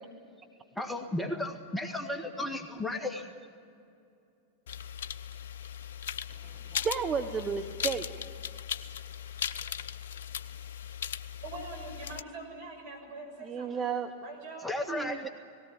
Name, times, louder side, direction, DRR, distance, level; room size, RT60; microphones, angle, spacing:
voice 1, 0.8-3.3 14.6-15.3, left 1 dB, 5° left, 4 dB, 1.8 m, -34 dB
sound 1, 4.7-12.2, left 9 dB, 70° left, 0.6 m, -38 dB
voice 2, 6.3-8.0 13.4-14.1 14.9-15.3, right 6 dB, 25° right, 7 dB, 1.2 m, -33 dB
voice 3, 11.4-13.9 14.2-14.7, right 3 dB, 60° right, 3 dB, 6.7 m, -43 dB
19.0 x 17.0 x 9.9 m, 2.5 s
hypercardioid pair, 95°, 0 cm